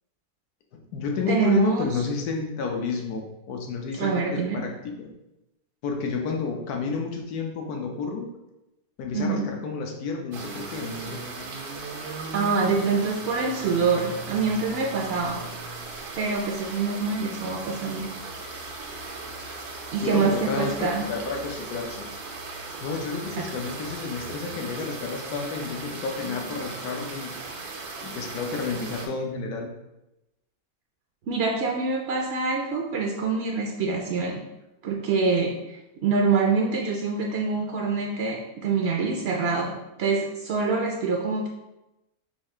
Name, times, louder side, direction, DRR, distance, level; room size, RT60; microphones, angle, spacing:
voice 1, 0.7-5.1 5.8-8.3 9.0-11.2 20.0-22.1 22.8-27.3 28.0-29.7, left 4 dB, 90° left, 1 dB, 1.2 m, -31 dB
voice 2, 1.3-1.9 3.9-4.6 9.1-9.5 12.3-15.4 16.2-18.1 19.9-21.1 23.4-23.5 31.3-34.4 34.8-39.7 40.0-41.5, right 4 dB, 65° right, 0 dB, 0.6 m, -25 dB
sound 1, 10.3-29.1, right 3 dB, 85° right, 1.3 m, -37 dB
4.6 x 2.4 x 4.3 m, 0.94 s
omnidirectional pair, 1.6 m